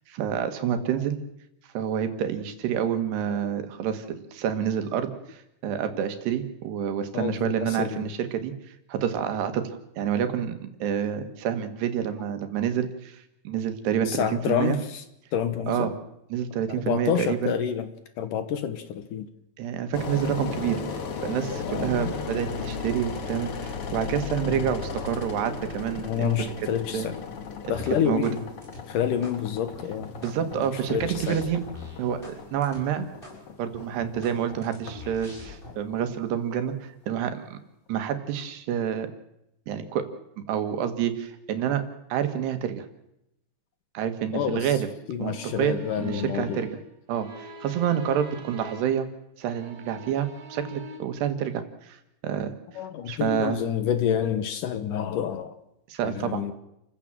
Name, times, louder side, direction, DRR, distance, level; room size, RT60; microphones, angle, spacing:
voice 1, 0.1-1.2 1.8-9.7 10.0-14.8 15.7-15.9 16.3-17.5 19.6-26.5 26.9-27.1 27.6-27.7 28.1-28.3 30.2-31.6 32.0-33.1 33.6-37.6 37.9-39.1 39.7-40.1 40.4-41.8 42.1-42.9 44.0-44.9 45.2-46.7 47.1-49.1 49.4-52.0 52.2-52.5 53.1-53.6 55.9-56.4, right 9 dB, 85° right, 9 dB, 3.8 m, -28 dB
voice 2, 7.1-8.1 14.1-15.0 15.3-15.9 16.8-17.9 18.2-19.3 21.6-22.1 24.4-25.1 26.0-27.2 27.7-28.5 28.9-30.1 30.6-31.4 44.3-44.8 45.1-46.6 52.8-55.5 56.1-56.5, left 9 dB, 65° left, 11 dB, 2.3 m, -28 dB
Engine, 19.9-36.8, left 5 dB, 50° left, 1.8 m, -36 dB
sound 1, 27.7-28.4 28.6-29.4 29.7-32.4 32.6-32.8 33.2-33.4 33.7-35.7, left 3 dB, 10° left, 6.7 m, -43 dB
sound 2, 45.3-49.1 49.4-51.0, right 1 dB, 30° right, 2.8 m, -45 dB
29.5 x 15.5 x 7.6 m, 0.85 s
omnidirectional pair, 4.7 m